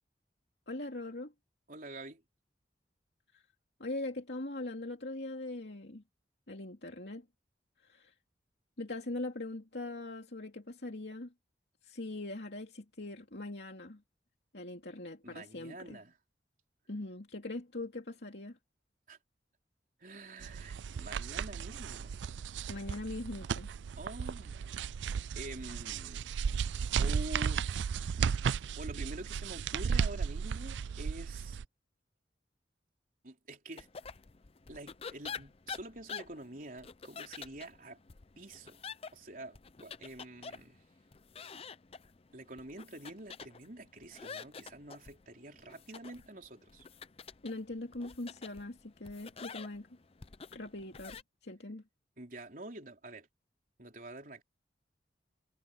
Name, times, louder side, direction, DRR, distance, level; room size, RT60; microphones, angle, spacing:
voice 1, 0.7-1.3 3.3-3.4 3.8-6.0 6.5-7.3 7.8-8.1 8.8-11.3 11.8-14.0 14.5-16.0 16.9-18.6 22.7-23.7 47.4-49.9 50.5-51.8, left 2 dB, 70° left, 2.6 m, -41 dB
voice 2, 1.7-2.2 15.2-16.2 19.1-19.2 20.0-22.2 24.0-26.3 27.0-31.6 33.2-33.9 34.7-38.0 38.4-38.8 39.1-40.8 42.3-46.9 52.2-53.3 53.8-54.4, right 1 dB, 50° right, 3.9 m, -47 dB
sound 1, 20.4-31.6, right 6 dB, 85° right, 0.4 m, -35 dB
sound 2, 33.8-51.2, left 6 dB, 35° left, 0.6 m, -48 dB
head